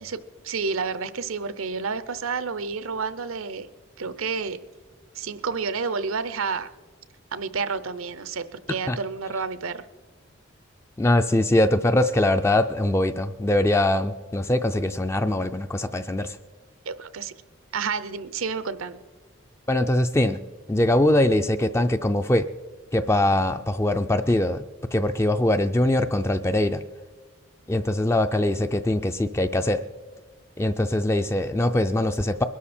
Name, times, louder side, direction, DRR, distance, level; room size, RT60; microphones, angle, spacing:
voice 1, 0.4-3.7 4.0-4.6 5.1-6.7 7.3-9.8 16.9-17.3 17.7-19.0, right 5 dB, 85° right, 14 dB, 0.8 m, -30 dB
voice 2, 11.0-16.4 19.7-20.4 20.7-22.5 22.9-24.6 24.9-26.8 27.7-29.8 30.6-32.4, left 1 dB, 15° left, 8 dB, 0.3 m, -22 dB
21.5 x 12.5 x 4.3 m, 1.4 s
head